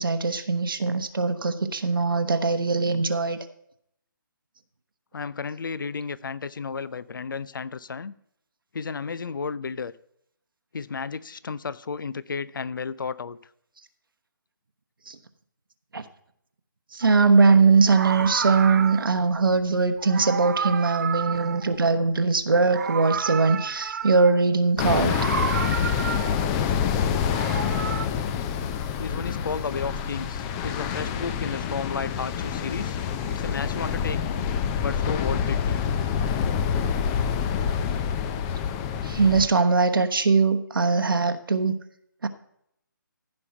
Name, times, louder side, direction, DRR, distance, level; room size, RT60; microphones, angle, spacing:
voice 1, 0.0-3.4 15.1-15.2 15.9-16.0 16.9-25.2 39.0-41.8 42.2-42.3, right 4 dB, 80° right, 1.0 m, -21 dB
voice 2, 5.1-8.1 8.7-9.9 10.7-13.4 29.0-33.0 33.3-34.4 34.8-35.9, left 5 dB, 70° left, 0.6 m, -33 dB
Meow, 17.0-17.2 17.8-19.3 20.0-22.3 22.5-24.4 25.0-26.6 27.1-28.1, right 7 dB, 50° right, 0.5 m, -31 dB
sound 1, 24.8-39.5, left 7 dB, 15° left, 0.5 m, -27 dB
15.0 x 5.4 x 5.8 m
figure-of-eight pair, 150°, 11 cm